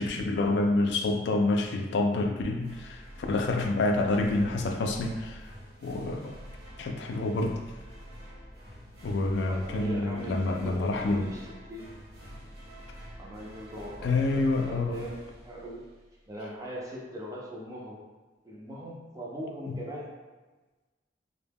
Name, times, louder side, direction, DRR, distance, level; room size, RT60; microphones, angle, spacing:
voice 1, 0.0-5.5 5.8-6.4 6.8-7.6 9.0-11.3 14.0-15.0 19.7-19.8, left 2 dB, 65° left, 3 dB, 0.3 m, -28 dB
sound 1, 2.6-16.3, equal, 60° right, 1.0 m, -47 dB
voice 2, 9.4-11.9 13.2-15.9 16.3-18.0 18.4-20.2, equal, 20° right, -3 dB, 0.4 m, -40 dB
2.1 x 2.1 x 3.3 m, 1.3 s
head